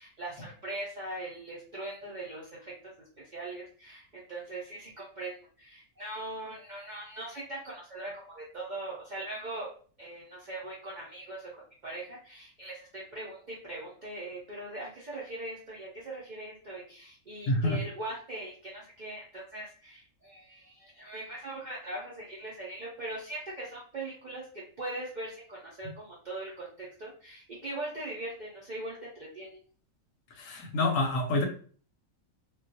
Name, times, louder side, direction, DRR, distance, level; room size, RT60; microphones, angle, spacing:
voice 1, 0.0-9.7 10.0-29.6, right 2 dB, 65° right, 0.4 m, -41 dB
voice 2, 17.5-17.8 30.4-31.5, left 2 dB, 70° left, 0.9 m, -27 dB
2.2 x 2.2 x 2.6 m
omnidirectional pair, 1.5 m